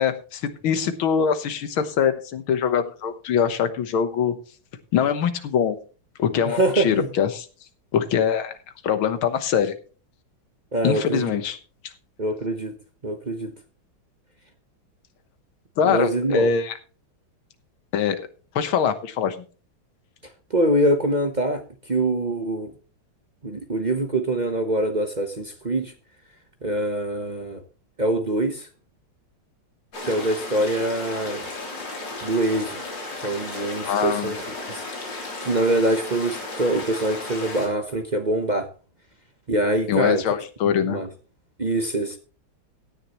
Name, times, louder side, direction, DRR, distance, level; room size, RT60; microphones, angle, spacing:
voice 1, 0.0-4.3 4.9-5.8 6.2-7.5 7.9-8.5 8.8-9.7 10.8-11.6 11.8-11.9 15.8-16.8 17.9-18.3 18.6-19.4 33.9-34.3 39.9-41.0, left 7 dB, 75° left, 10 dB, 2.0 m, -23 dB
voice 2, 6.4-7.1 10.7-11.3 12.2-12.7 13.0-13.5 15.8-16.5 20.5-21.6 21.9-22.7 23.4-25.9 26.6-27.6 28.0-28.7 30.0-31.5 32.2-32.8 33.2-34.4 34.7-38.7 39.5-40.2 40.6-41.1 41.6-42.2, right 1 dB, 35° right, 6 dB, 0.7 m, -24 dB
sound 1, 29.9-37.7, left 2 dB, 60° left, 4.1 m, -34 dB
16.5 x 10.0 x 3.0 m, 0.36 s
omnidirectional pair, 2.3 m